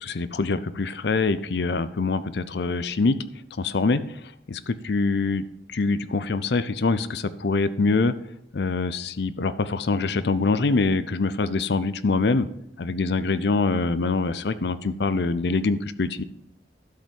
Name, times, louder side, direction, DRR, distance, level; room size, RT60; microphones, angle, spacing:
voice 1, 0.0-3.2 3.6-4.0 4.5-8.1 8.5-12.5 12.8-16.2, left 3 dB, 65° left, 14 dB, 0.5 m, -24 dB
12.0 x 5.4 x 5.3 m, 0.78 s
head